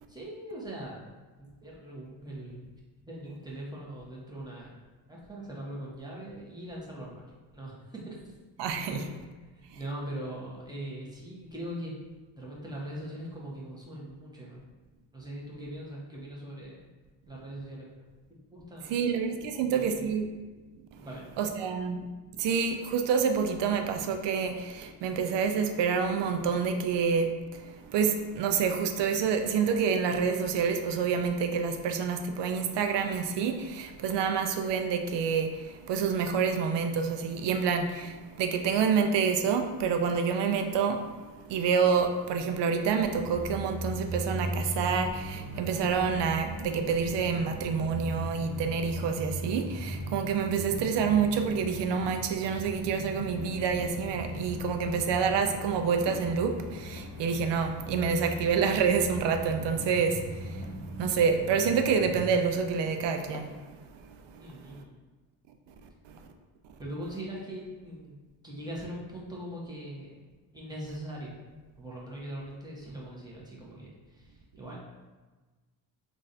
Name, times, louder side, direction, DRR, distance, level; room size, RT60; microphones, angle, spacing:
voice 1, 0.1-1.0 1.4-2.6 3.1-4.8 5.1-7.2 7.5-8.3 8.9-9.0 9.5-12.1 12.3-14.6 15.1-16.9 17.3-17.9 18.5-19.0 19.5-20.1 21.0-21.3 64.4-65.0 66.8-68.1 68.4-70.2 70.5-71.4 71.7-74.8, right 1 dB, 10° right, -5 dB, 1.1 m, -41 dB
voice 2, 8.6-9.0 18.9-20.3 21.4-22.0 22.4-27.6 27.9-41.0 41.5-60.5 61.0-63.5, right 6 dB, 65° right, 6 dB, 0.5 m, -28 dB
sound 1, 42.9-62.5, equal, 40° right, 0.9 m, -39 dB
Walk footsteps, 56.1-56.3 57.0-57.1 57.9-58.0 58.8-59.0 59.7-59.9 60.6-60.8 61.5-61.7 62.5-62.7 63.3-63.5, left 2 dB, 25° left, 0.5 m, -46 dB
3.8 x 2.5 x 2.6 m, 1.3 s
supercardioid pair, 65°, 46 cm